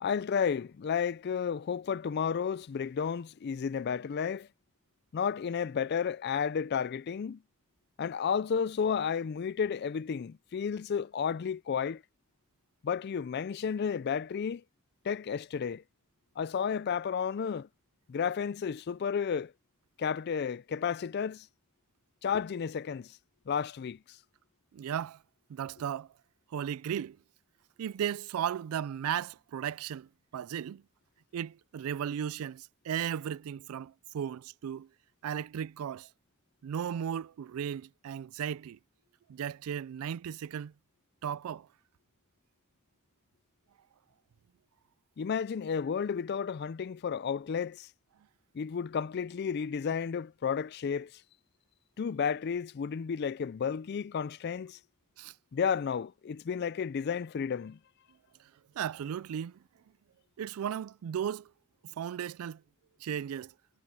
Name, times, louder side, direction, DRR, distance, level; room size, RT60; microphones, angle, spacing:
voice 1, 0.0-4.5 5.1-7.4 8.0-12.0 12.8-14.6 15.0-15.8 16.4-17.7 18.1-19.5 20.0-21.5 22.2-23.2 23.5-24.2 45.2-47.9 48.5-51.2 52.0-54.8 55.5-57.8, left 6 dB, 50° left, 0.4 m, -32 dB
voice 2, 24.7-25.2 25.5-26.1 26.5-27.2 27.8-30.8 31.3-34.9 35.2-36.1 36.6-38.8 39.3-40.7 41.2-41.7 55.2-55.3 58.8-59.6 60.4-61.5 61.8-62.6 63.0-63.5, right 9 dB, 85° right, 0.3 m, -35 dB
head